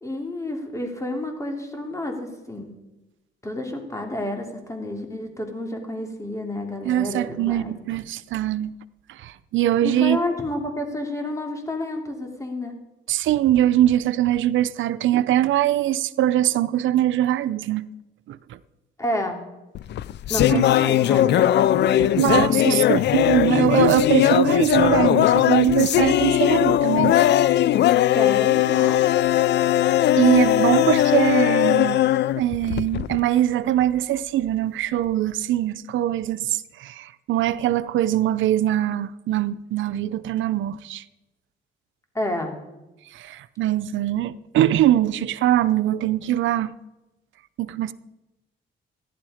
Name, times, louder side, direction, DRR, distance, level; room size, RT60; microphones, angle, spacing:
voice 1, 0.0-2.7 3.4-7.7 9.8-12.8 19.0-19.4 20.3-22.8 28.1-29.1 42.1-42.5, left 1 dB, 15° left, 2.9 m, -30 dB
voice 2, 6.8-8.7 9.1-10.2 13.1-17.9 18.3-18.6 20.5-20.6 22.0-27.2 30.2-32.0 32.4-41.0 43.1-46.7 47.6-47.9, right 12 dB, 75° right, 0.7 m, -22 dB
sound 1, 19.7-33.2, left 13 dB, 60° left, 0.4 m, -19 dB
14.5 x 11.0 x 5.0 m
cardioid pair, 90°, 20 cm